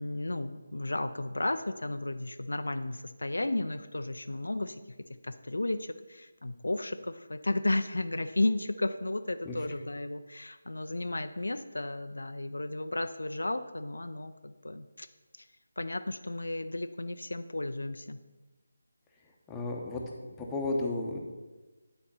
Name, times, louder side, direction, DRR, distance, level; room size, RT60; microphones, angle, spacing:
voice 1, 0.0-4.8 5.2-15.1 15.4-15.5 15.8-18.2, left 2 dB, 65° left, 9 dB, 0.4 m, -33 dB
voice 2, 19.5-20.0 20.4-21.2, left 2 dB, 10° left, -2 dB, 0.9 m, -32 dB
10.0 x 4.3 x 5.6 m, 1.2 s
figure-of-eight pair, 155°, 0 cm